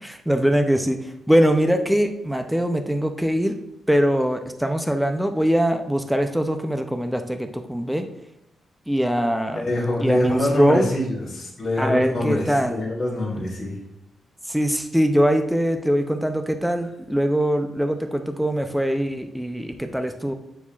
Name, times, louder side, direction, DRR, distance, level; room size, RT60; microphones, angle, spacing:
voice 1, 0.0-3.6 3.9-8.1 8.9-9.7 10.0-10.9 11.8-12.8 13.4-13.5 14.5-20.3, equal, ahead, 6 dB, 0.4 m, -22 dB
voice 2, 9.5-13.8, left 1 dB, 25° left, -10 dB, 2.1 m, -25 dB
8.9 x 4.7 x 2.3 m, 0.86 s
wide cardioid pair, 165°, 0 cm